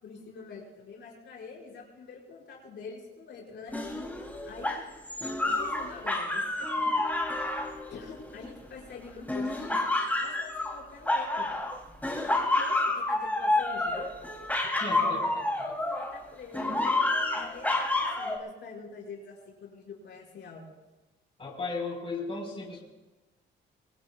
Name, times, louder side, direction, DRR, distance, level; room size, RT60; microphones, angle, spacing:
voice 1, 0.0-3.7 4.4-4.8 5.4-7.0 7.9-9.8 10.2-11.5 12.2-14.1 14.8-16.7 17.3-20.7, left 5 dB, 65° left, -3 dB, 5.8 m, -45 dB
sound 1, 3.7-8.7 9.3-11.8 12.0-16.2 16.5-18.4, left 2 dB, 10° left, 3.1 m, -29 dB
voice 2, 14.8-15.2 21.4-22.8, left 3 dB, 30° left, -2 dB, 4.7 m, -35 dB
24.5 x 20.0 x 2.4 m, 1.1 s
cardioid pair, 90°, 20 cm